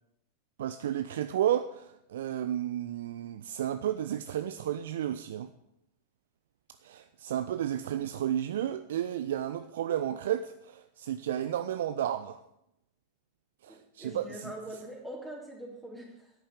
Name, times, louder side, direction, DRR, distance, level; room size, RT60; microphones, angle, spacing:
voice 1, 0.6-5.5 6.8-12.4 13.6-14.5, right 11 dB, 60° right, 10 dB, 0.6 m, -32 dB
voice 2, 13.7-16.3, right 1 dB, ahead, -3 dB, 3.2 m, -43 dB
11.0 x 9.1 x 9.2 m, 0.79 s
figure-of-eight pair, 90°, 0 cm